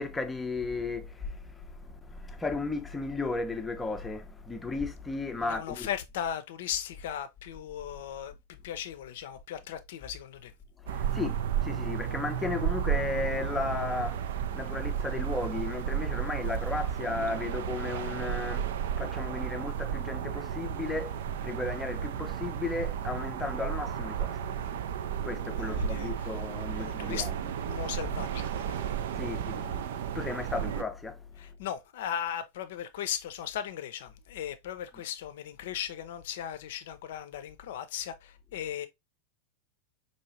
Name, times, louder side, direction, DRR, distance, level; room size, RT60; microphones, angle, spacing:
voice 1, 0.0-5.9 10.8-24.6 25.0-27.3 29.1-31.3, left 3 dB, 10° left, 0.5 m, -35 dB
voice 2, 5.4-8.4 8.6-10.5 25.6-26.4 26.8-27.3 27.6-28.9 31.4-38.9, left 10 dB, 55° left, 0.5 m, -37 dB
sound 1, 10.9-30.8, right 9 dB, 55° right, 0.3 m, -33 dB
4.7 x 2.7 x 2.6 m
figure-of-eight pair, 90°, 0 cm